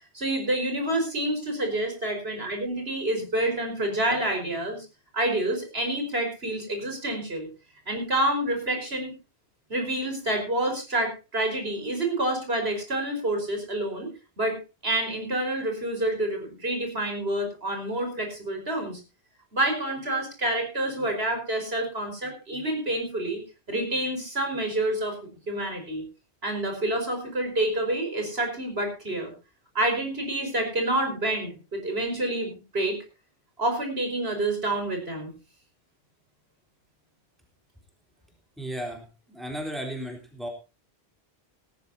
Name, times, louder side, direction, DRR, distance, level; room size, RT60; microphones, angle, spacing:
voice 1, 0.1-4.9 5.1-7.5 7.9-9.1 9.7-14.1 14.4-14.6 14.8-19.0 19.5-23.4 23.7-25.2 25.5-26.0 26.4-29.3 29.8-33.0 33.6-35.3, right 1 dB, 70° right, 4 dB, 5.4 m, -28 dB
voice 2, 38.6-40.5, equal, ahead, 1 dB, 3.7 m, -35 dB
18.5 x 14.0 x 2.8 m, 0.31 s
omnidirectional pair, 1.1 m